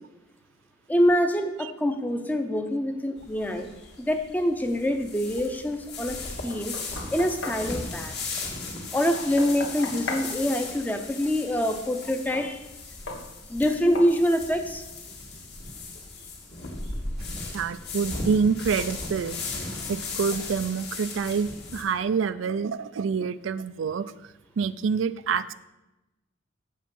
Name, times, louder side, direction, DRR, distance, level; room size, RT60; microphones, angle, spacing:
voice 1, 0.9-3.7 4.0-6.8 7.1-8.3 8.9-12.6 13.5-14.8, equal, 10° left, 6 dB, 0.6 m, -25 dB
sound 1, 3.2-21.8, left 3 dB, 60° left, 1.9 m, -37 dB
Knock, 6.5-7.7 9.1-10.3 12.3-12.5 13.1-13.3 13.9-14.2, left 3 dB, 80° left, 1.3 m, -36 dB
voice 2, 17.3-19.4 19.7-25.5, right 6 dB, 85° right, 14 dB, 0.4 m, -27 dB
7.4 x 7.1 x 5.4 m, 1.0 s
head